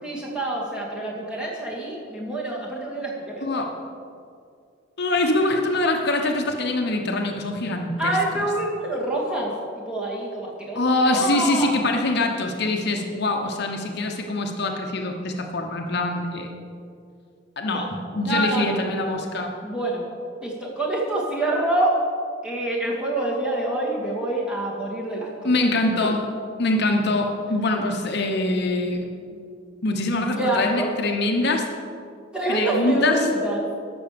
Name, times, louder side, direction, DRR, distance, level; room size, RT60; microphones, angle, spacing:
voice 1, 0.0-3.9 8.0-11.7 17.7-17.9 18.2-18.7 19.6-20.0 20.4-22.0 22.4-25.5 26.0-26.1 30.4-30.9 32.3-33.7, right 1 dB, 5° right, -5 dB, 2.4 m, -26 dB
voice 2, 3.4-3.7 5.0-8.2 10.7-16.5 17.6-17.8 18.1-19.5 25.4-26.3 26.6-29.0 29.3-29.4 29.8-31.7 32.5-33.3, left 2 dB, 60° left, 3 dB, 1.0 m, -24 dB
12.0 x 7.0 x 6.8 m, 2.3 s
head